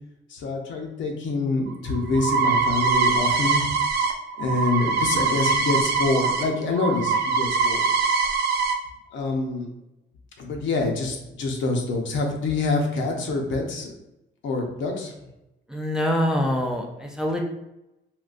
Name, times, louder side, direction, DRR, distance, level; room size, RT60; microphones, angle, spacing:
voice 1, 0.3-3.7 4.4-7.8 9.1-9.7 10.4-13.9 14.4-15.1, left 3 dB, 70° left, 1 dB, 0.7 m, -26 dB
sound 1, 1.7-6.4 6.7-8.7, right 5 dB, 55° right, 0.5 m, -23 dB
voice 2, 15.7-17.4, equal, 5° right, 1 dB, 0.4 m, -25 dB
3.6 x 2.2 x 2.4 m, 0.90 s
cardioid pair, 90°, 20 cm